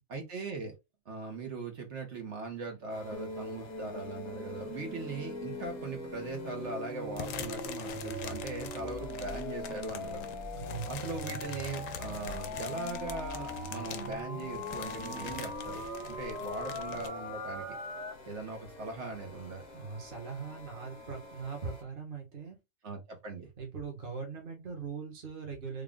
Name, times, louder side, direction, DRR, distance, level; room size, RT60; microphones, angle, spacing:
voice 1, 0.1-0.7 1.1-10.2 10.9-15.8 16.1-17.7 18.2-19.6 22.8-23.5, right 3 dB, 55° right, 1.4 m, -40 dB
sound 1, 2.9-21.8, left 4 dB, 55° left, 1.2 m, -51 dB
sound 2, 3.1-18.1, equal, 5° right, 0.7 m, -40 dB
sound 3, 7.2-17.1, left 8 dB, 75° left, 0.9 m, -44 dB
voice 2, 10.5-10.8 19.7-22.6 23.6-25.8, right 5 dB, 40° right, 1.4 m, -40 dB
3.6 x 2.4 x 3.7 m
omnidirectional pair, 1.5 m